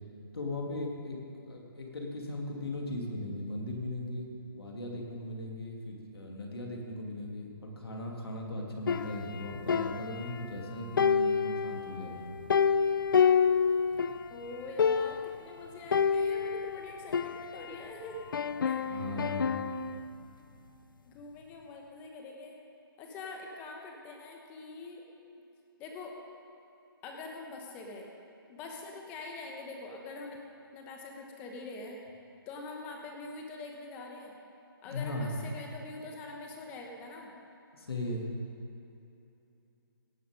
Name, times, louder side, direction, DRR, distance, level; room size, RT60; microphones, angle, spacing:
voice 1, 0.3-4.3 4.5-12.3 18.9-19.6 34.8-35.4 37.7-38.3, left 1 dB, 85° left, 0 dB, 2.7 m, -38 dB
sound 1, 8.9-10.6 11.0-14.3 14.5-14.6 14.8-15.4 15.9-17.9 18.3-20.0, left 6 dB, 60° left, 0.5 m, -28 dB
voice 2, 14.3-18.2 18.6-18.8 21.0-22.6 23.0-25.0 25.8-26.2 27.0-28.1 28.5-30.4 30.7-32.0 32.5-34.3 34.8-37.3, left 3 dB, 15° left, 1 dB, 1.0 m, -44 dB
17.5 x 7.1 x 5.2 m, 2.8 s
hypercardioid pair, 165°, 12 cm